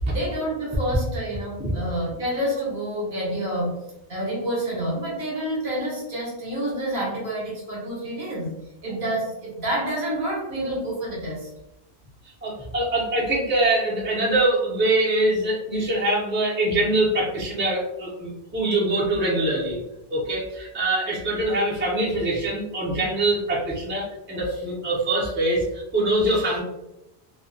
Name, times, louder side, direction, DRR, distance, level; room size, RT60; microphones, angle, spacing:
voice 1, 0.1-3.8 4.1-11.5, right 1 dB, 55° right, -4 dB, 1.0 m, -28 dB
voice 2, 12.4-19.8 20.1-26.6, right 1 dB, 15° right, -6 dB, 0.5 m, -23 dB
2.3 x 2.1 x 2.6 m, 0.87 s
omnidirectional pair, 1.1 m